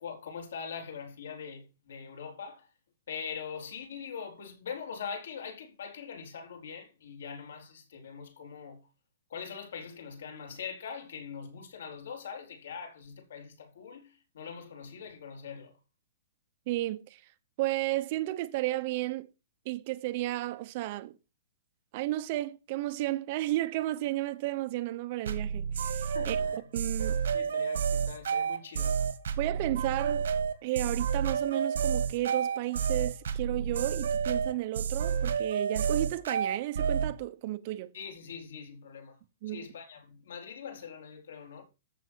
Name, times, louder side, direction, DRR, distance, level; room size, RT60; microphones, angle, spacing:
voice 1, 0.0-2.7 3.1-8.8 9.3-15.7 26.1-26.6 27.3-29.0 37.9-39.2 39.5-41.6, left 6 dB, 70° left, 4.1 m, -42 dB
voice 2, 16.7-17.2 17.6-19.3 19.6-21.1 21.9-27.2 29.4-30.2 30.6-37.9 39.4-39.7, right 16 dB, 30° right, 0.9 m, -33 dB
sound 1, 25.3-37.1, right 7 dB, 75° right, 2.0 m, -30 dB
13.5 x 7.0 x 4.6 m
hypercardioid pair, 180°, 0 cm